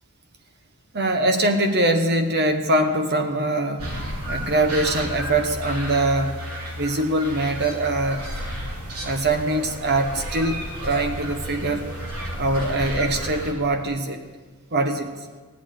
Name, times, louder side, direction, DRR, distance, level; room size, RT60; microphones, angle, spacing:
voice 1, 0.9-3.9 4.3-6.3 6.8-8.2 9.0-11.9 12.4-14.2 14.7-15.1, right 2 dB, 50° right, 6 dB, 1.1 m, -23 dB
sound 1, 3.8-13.5, equal, 80° right, 3.2 m, -32 dB
16.5 x 8.8 x 9.3 m, 1.4 s
head